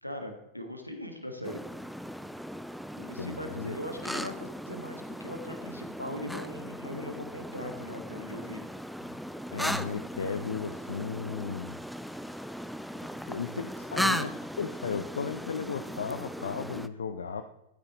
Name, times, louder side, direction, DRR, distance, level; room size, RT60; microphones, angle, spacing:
voice 1, 0.0-1.6 2.9-8.6, left 1 dB, 90° left, 5 dB, 1.6 m, -40 dB
sound 1, 1.4-16.9, equal, ahead, 0.5 m, -37 dB
voice 2, 3.2-3.8 9.5-11.7 13.3-17.4, left 6 dB, 70° left, 8 dB, 0.6 m, -35 dB
12.5 x 9.7 x 3.0 m, 0.88 s
figure-of-eight pair, 90°, 0 cm